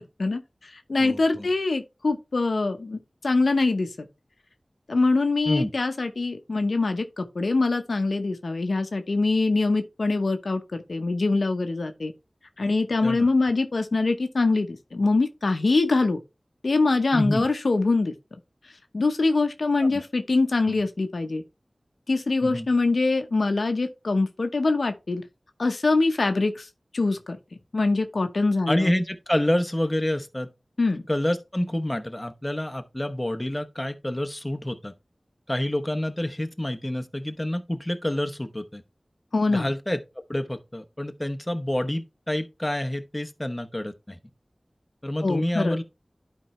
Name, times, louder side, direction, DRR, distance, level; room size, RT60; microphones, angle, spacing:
voice 1, 0.0-4.1 4.9-12.1 12.6-16.2 16.6-18.1 18.9-21.4 22.1-25.2 25.6-26.7 26.9-27.4 27.7-28.9 30.8-31.0 39.3-39.7 45.2-45.8, left 3 dB, 85° left, 0.8 m, -24 dB
voice 2, 1.0-1.5 5.5-5.7 13.0-13.3 17.1-17.5 19.8-20.0 20.7-20.8 22.4-22.7 28.7-30.5 31.1-34.9 35.5-38.8 39.5-40.0 40.3-44.2 45.0-45.8, left 1 dB, 20° left, 0.9 m, -28 dB
11.5 x 4.5 x 3.1 m
wide cardioid pair, 50°, 0 cm